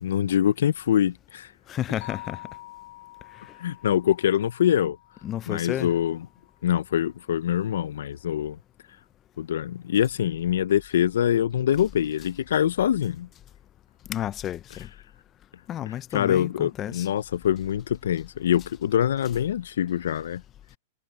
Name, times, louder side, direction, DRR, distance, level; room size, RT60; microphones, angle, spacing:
voice 1, 0.0-1.5 3.6-5.0 5.5-6.2 6.6-8.6 9.4-13.3 16.1-20.4, left 10 dB, 80° left, 0.4 m, -24 dB
voice 2, 1.7-2.4 5.2-5.9 14.1-14.9 15.7-17.1, left 12 dB, 25° left, 0.5 m, -31 dB
sound 1, 2.0-6.2, left 17 dB, 55° left, 7.3 m, -46 dB
hypercardioid pair, 150°, 0 cm